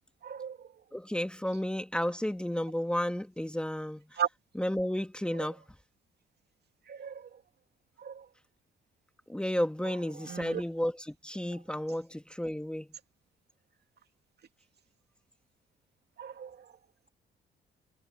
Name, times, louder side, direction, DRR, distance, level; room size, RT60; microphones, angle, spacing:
voice 1, 0.2-0.7 4.2-4.3 5.4-5.5 6.9-7.4 8.0-8.3 9.8-10.6 11.5-11.6 16.2-16.8, right 9 dB, 55° right, 2.5 m, -37 dB
voice 2, 0.9-4.1 4.6-5.6 9.3-12.9, equal, 5° left, 2.2 m, -32 dB
cardioid pair, 90°, 20 cm